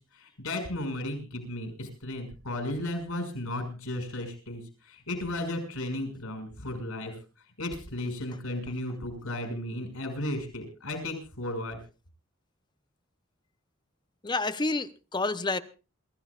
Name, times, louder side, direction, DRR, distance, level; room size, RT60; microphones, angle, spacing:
voice 1, 0.1-7.1 7.6-11.8, left 1 dB, 90° left, 6.5 m, -34 dB
voice 2, 14.2-15.6, left 3 dB, 20° left, 0.7 m, -29 dB
27.5 x 14.5 x 2.4 m
head